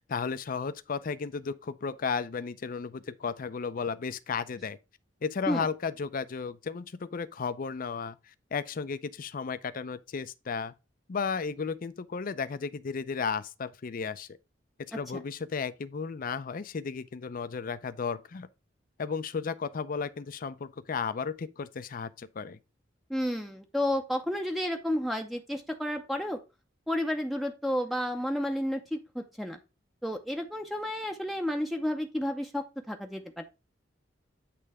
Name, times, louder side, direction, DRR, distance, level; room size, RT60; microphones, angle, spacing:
voice 1, 0.0-4.8 5.2-8.2 8.5-10.7 11.1-14.3 14.9-18.5 19.0-22.6, left 5 dB, 50° left, 0.5 m, -34 dB
voice 2, 23.1-26.4 26.9-29.6 30.0-33.4, left 1 dB, ahead, 0.6 m, -31 dB
8.5 x 3.3 x 4.7 m
head